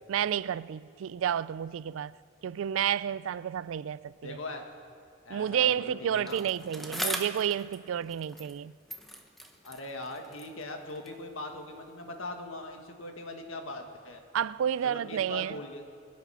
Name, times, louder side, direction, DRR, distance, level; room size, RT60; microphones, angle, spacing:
voice 1, 0.1-2.1 2.4-4.4 5.3-8.7 14.3-15.6, right 9 dB, 75° right, 0.3 m, -30 dB
voice 2, 4.2-4.7 5.3-6.4 9.6-14.2 14.8-15.8, left 2 dB, 80° left, 1.8 m, -40 dB
Bicycle, 6.3-8.6 8.9-11.3 12.0-12.1, equal, ahead, 1.1 m, -40 dB
24.0 x 8.4 x 5.7 m
head